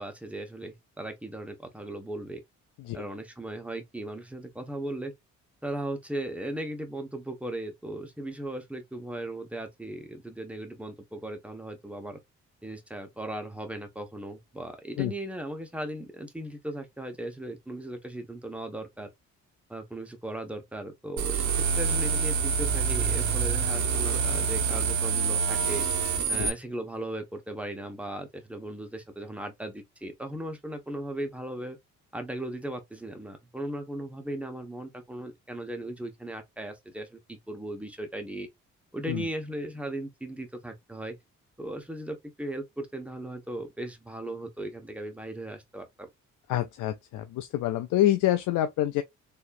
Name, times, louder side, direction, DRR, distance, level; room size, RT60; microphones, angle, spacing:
voice 1, 0.0-2.4 2.9-5.1 5.6-12.2 12.6-19.1 19.7-21.4 21.8-25.9 26.3-31.8 32.1-38.5 38.9-41.2 41.6-46.1, right 1 dB, 5° right, 1.3 m, -37 dB
sound 1, 21.2-26.5, right 5 dB, 70° right, 1.6 m, -26 dB
voice 2, 46.5-49.0, left 13 dB, 85° left, 0.6 m, -27 dB
4.4 x 3.1 x 2.6 m
cardioid pair, 90°, 30 cm